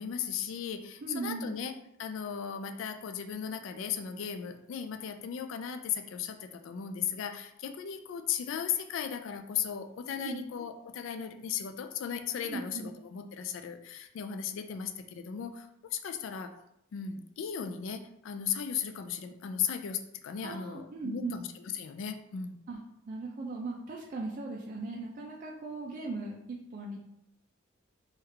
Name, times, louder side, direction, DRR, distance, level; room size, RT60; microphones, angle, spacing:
voice 1, 0.0-1.7 2.0-15.7 15.9-16.5 16.9-21.5 21.7-22.6, left 8 dB, 65° left, 7 dB, 0.3 m, -36 dB
voice 2, 1.0-1.6 10.2-10.4 12.4-12.9 20.4-21.3 22.7-22.8 23.1-27.0, right 3 dB, 40° right, -2 dB, 0.3 m, -38 dB
3.1 x 2.3 x 3.2 m, 0.79 s
head